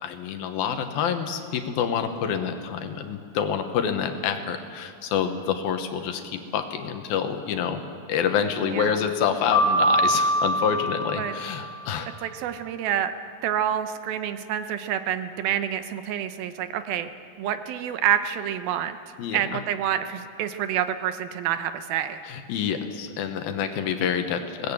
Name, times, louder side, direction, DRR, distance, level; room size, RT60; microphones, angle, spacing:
voice 1, 0.0-7.8 8.1-12.2 19.2-19.4 22.3-24.7, left 7 dB, 75° left, 7 dB, 2.9 m, -27 dB
voice 2, 8.6-9.0 11.2-11.3 12.2-13.1 13.4-17.1 17.4-19.0 19.3-22.2, right 10 dB, 75° right, 10 dB, 2.5 m, -27 dB
Piano, 9.5-11.7, equal, ahead, 4.6 m, -23 dB
20.5 x 18.5 x 8.6 m, 2.2 s
omnidirectional pair, 4.5 m